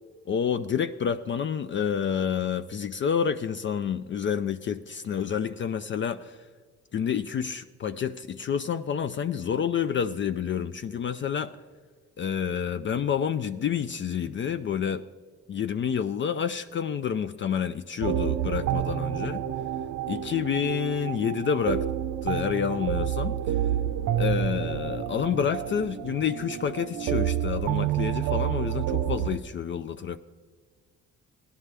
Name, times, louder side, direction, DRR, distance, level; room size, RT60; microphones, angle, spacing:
voice 1, 0.3-6.4 6.9-11.6 12.2-15.0 15.5-19.4 20.1-21.8 22.2-23.4 24.2-30.2, left 8 dB, 40° left, 11 dB, 0.4 m, -29 dB
sound 1, 18.0-29.4, right 10 dB, 75° right, 0.6 m, -29 dB
16.0 x 11.0 x 3.4 m, 1.5 s
cardioid pair, 90°, 30 cm